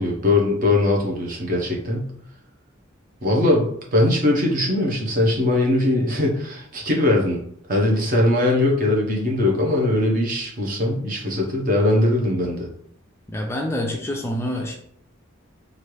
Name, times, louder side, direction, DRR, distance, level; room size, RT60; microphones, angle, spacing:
voice 1, 0.0-2.1 3.2-7.4 7.7-12.7, left 1 dB, 45° right, -1 dB, 0.8 m, -20 dB
voice 2, 13.3-14.7, left 1 dB, 15° left, 0 dB, 0.3 m, -26 dB
3.1 x 2.4 x 3.1 m, 0.67 s
head